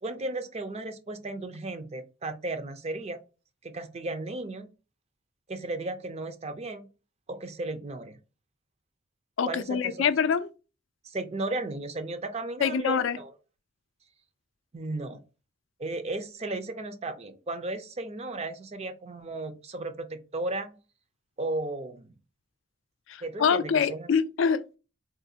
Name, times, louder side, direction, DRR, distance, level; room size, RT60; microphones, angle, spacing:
voice 1, 0.0-3.2 3.6-4.7 5.5-6.9 7.3-8.2 9.5-10.0 11.0-13.3 14.7-15.2 15.8-20.8 21.4-22.2 23.2-24.1, right 2 dB, 35° right, 0.4 m, -35 dB
voice 2, 9.4-10.5 12.6-13.2 23.1-24.8, left 6 dB, 75° left, 0.3 m, -25 dB
3.7 x 2.4 x 2.6 m
head